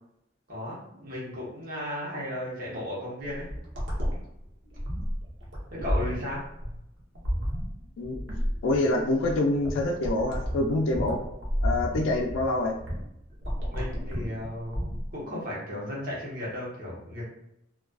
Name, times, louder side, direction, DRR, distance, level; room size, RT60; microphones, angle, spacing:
voice 1, 0.5-3.5 5.7-6.4 13.7-17.2, left 1 dB, 50° right, -6 dB, 1.0 m, -35 dB
sound 1, 3.2-15.1, equal, 70° right, 0.7 m, -32 dB
voice 2, 8.6-11.2 11.6-12.7, left 2 dB, 85° left, 2 dB, 0.4 m, -26 dB
2.3 x 2.3 x 2.2 m, 0.82 s
head